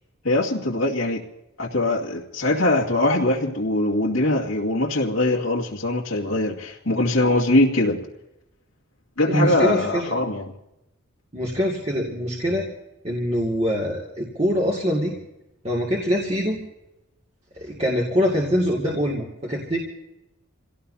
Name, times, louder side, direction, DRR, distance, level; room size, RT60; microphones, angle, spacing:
voice 1, 0.2-1.2 1.6-8.0 9.2-10.5, left 2 dB, 80° left, -3 dB, 2.2 m, -22 dB
voice 2, 9.3-10.1 11.3-12.7 13.0-15.1 15.6-16.6 17.6-19.8, equal, 30° right, -2 dB, 2.3 m, -24 dB
28.0 x 18.0 x 2.8 m, 0.91 s
head